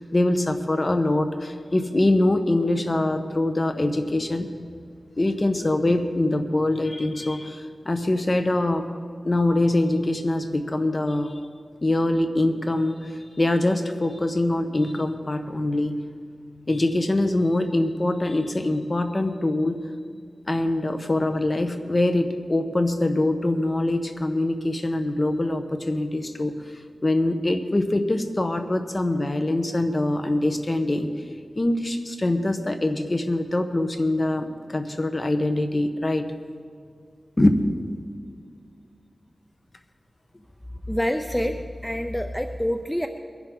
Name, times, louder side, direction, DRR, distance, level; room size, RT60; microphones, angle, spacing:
voice 1, 0.0-4.5 5.2-8.9 9.2-11.4 11.8-16.0 16.7-19.8 20.5-26.6 27.0-31.1 31.5-36.3 37.4-37.7, left 1 dB, 40° left, 7 dB, 1.3 m, -23 dB
voice 2, 40.9-43.1, equal, 5° left, 6 dB, 0.6 m, -26 dB
22.0 x 11.0 x 4.1 m, 2.2 s
wide cardioid pair, 55°, 0 cm